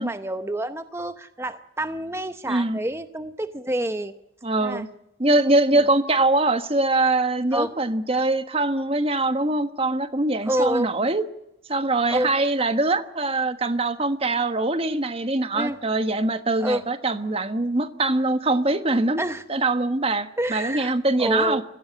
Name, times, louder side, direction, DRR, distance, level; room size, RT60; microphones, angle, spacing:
voice 1, 0.0-4.1 4.6-4.8 7.5-7.7 10.4-10.9 12.1-12.3 15.5-15.8 16.6-16.8 19.2-19.4 20.4-20.9 21.2-21.6, right 1 dB, 15° right, 10 dB, 0.7 m, -27 dB
voice 2, 2.5-2.8 4.4-4.9 5.2-11.2 11.7-19.2 19.5-21.6, right 2 dB, 30° right, 10 dB, 1.2 m, -23 dB
21.5 x 16.0 x 9.8 m, 0.85 s
head